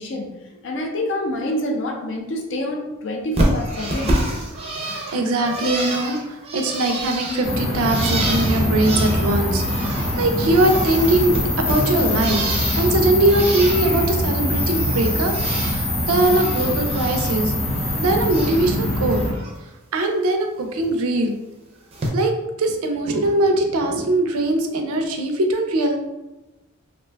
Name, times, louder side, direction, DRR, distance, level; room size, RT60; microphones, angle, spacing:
voice 1, 0.0-4.2, left 1 dB, 55° left, 1 dB, 0.5 m, -27 dB
Bird, 3.3-10.1 10.4-12.9 13.2-14.1 14.4-15.8 16.1-17.3 17.6-18.7 19.1-19.5 20.8-20.9 21.9-22.1, right 1 dB, 30° right, 0.5 m, -28 dB
voice 2, 4.9-12.5 12.7-15.3 15.6-17.5 18.0-19.2 19.9-21.4 22.1-22.3 22.6-26.0, right 1 dB, 85° right, 4 dB, 0.5 m, -21 dB
sound 1, 7.4-19.3, left 1 dB, 85° left, 1.0 m, -23 dB
2.5 x 2.2 x 3.2 m, 1.0 s
head